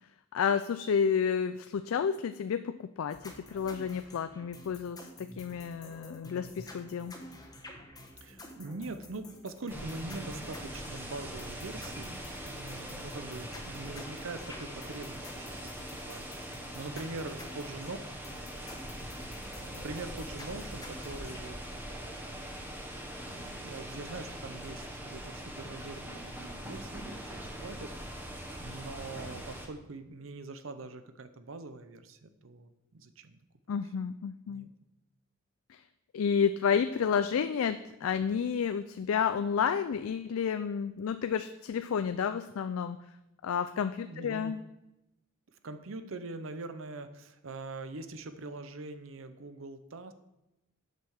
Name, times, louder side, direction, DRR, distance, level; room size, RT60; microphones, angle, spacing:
voice 1, 0.3-7.2 33.7-34.7 35.7-35.8 36.1-43.0 43.4-44.6, left 7 dB, 80° left, 10 dB, 0.4 m, -31 dB
sound 1, 3.1-21.4, left 1 dB, 20° left, 1.0 m, -50 dB
voice 2, 8.2-12.2 12.5-15.8 16.1-18.0 19.7-21.6 21.9-22.5 23.3-33.4 33.7-33.8 34.5-34.7 44.0-44.5 45.6-50.1, right 3 dB, 70° right, 10 dB, 0.7 m, -43 dB
sound 2, 9.7-29.7, right 1 dB, 10° right, 1.0 m, -42 dB
7.5 x 5.6 x 6.3 m, 0.93 s
head